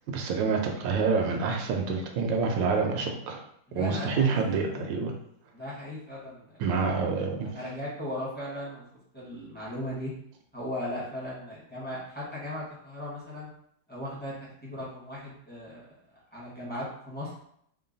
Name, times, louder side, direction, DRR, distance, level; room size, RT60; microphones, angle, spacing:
voice 1, 0.1-3.4 3.7-5.1 6.6-7.5, right 5 dB, 75° right, 2 dB, 1.3 m, -27 dB
voice 2, 3.7-4.9 5.5-6.6 7.4-8.8 9.1-10.1 10.5-13.5 13.9-14.3 14.6-17.3, left 1 dB, 10° left, -7 dB, 0.7 m, -37 dB
3.7 x 2.2 x 3.9 m, 0.70 s
omnidirectional pair, 2.1 m